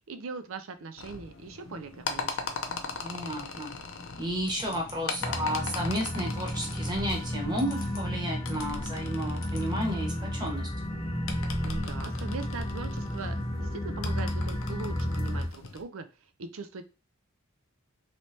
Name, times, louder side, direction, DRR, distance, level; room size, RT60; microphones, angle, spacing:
voice 1, 0.1-2.6 11.6-16.1 16.4-16.8, right 4 dB, 70° right, 9 dB, 0.5 m, -40 dB
sound 1, 1.0-15.8, left 4 dB, 65° left, 0.5 m, -40 dB
voice 2, 3.0-3.7 4.2-10.7, equal, 20° right, 0 dB, 1.0 m, -32 dB
sound 2, 4.5-8.7 9.1-9.7 10.0-10.1 10.4-10.5, left 3 dB, 45° left, 0.9 m, -47 dB
sound 3, 5.2-15.5, left 1 dB, 15° left, 0.8 m, -32 dB
3.3 x 3.1 x 2.7 m, 0.31 s
head